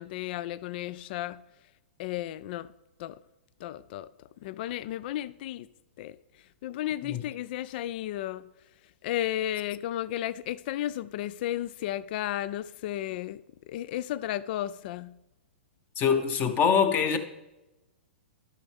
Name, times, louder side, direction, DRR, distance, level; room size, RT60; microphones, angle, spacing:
voice 1, 0.0-1.4 2.0-2.7 3.0-3.2 3.6-4.1 4.4-5.7 6.0-6.2 6.6-8.4 9.0-13.4 13.7-15.1, left 13 dB, 50° left, 0.3 m, -33 dB
voice 2, 16.0-17.2, left 7 dB, 30° left, 0.9 m, -24 dB
12.0 x 6.1 x 3.5 m
hypercardioid pair, 120°, 7 cm